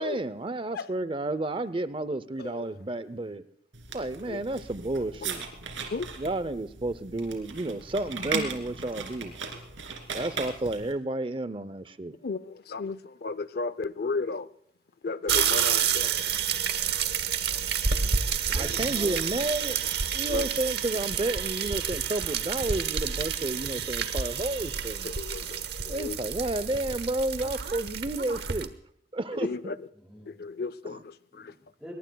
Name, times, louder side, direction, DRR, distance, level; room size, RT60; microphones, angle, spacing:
voice 1, 0.0-3.4 3.9-5.4 6.2-9.3 10.1-12.2 18.5-19.8 20.1-25.1 25.9-28.7 29.1-29.8 30.8-31.0, right 2 dB, 25° right, 0.6 m, -31 dB
sound 1, 3.7-10.9, right 5 dB, 85° right, 2.9 m, -38 dB
voice 2, 12.2-14.5 15.0-16.1 20.3-20.5 25.0-26.2 29.4-29.7 30.3-31.1 31.4-31.5, left 4 dB, 55° left, 0.5 m, -33 dB
sound 2, 15.3-28.7, right 7 dB, 60° right, 1.0 m, -29 dB
voice 3, 17.5-18.0 18.5-19.7 26.7-26.9 30.0-30.3 31.3-31.9, left 1 dB, ahead, 7.6 m, -46 dB
23.0 x 21.5 x 2.3 m
head